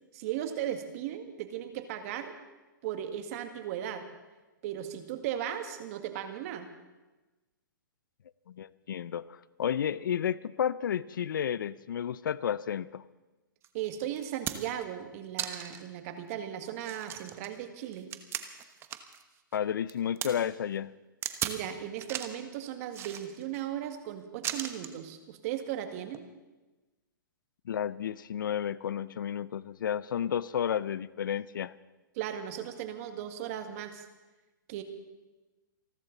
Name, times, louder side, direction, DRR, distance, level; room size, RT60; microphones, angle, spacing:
voice 1, 0.1-2.3 2.8-4.1 4.6-6.7 13.7-18.1 21.4-26.2 32.2-34.1 34.7-34.8, right 10 dB, 45° right, 7 dB, 1.9 m, -37 dB
voice 2, 8.5-13.0 19.5-20.9 27.7-31.7, left 9 dB, 70° left, 19 dB, 0.6 m, -32 dB
sound 1, 13.6-13.7 14.2-14.8 15.4-15.9 16.3-16.4 16.8-19.2 19.5-20.3 21.2-21.6 22.0-22.4 22.9-23.6 24.4-25.0 26.1-26.2, right 10 dB, 20° right, 1.1 m, -37 dB
28.0 x 12.0 x 4.0 m, 1.2 s
hypercardioid pair, 130°, 11 cm